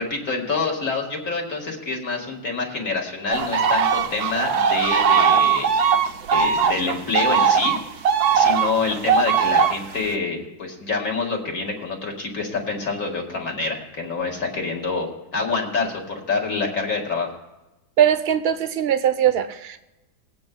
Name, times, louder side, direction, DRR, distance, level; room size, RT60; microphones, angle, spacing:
voice 1, 0.0-5.9 6.3-7.8 8.3-17.4, left 4 dB, 45° left, 1 dB, 2.3 m, -27 dB
sound 1, 3.3-10.1, right 6 dB, 65° right, 1.1 m, -19 dB
voice 2, 18.0-19.8, right 10 dB, 50° right, 10 dB, 0.8 m, -20 dB
22.5 x 8.8 x 2.3 m, 1.0 s
omnidirectional pair, 2.0 m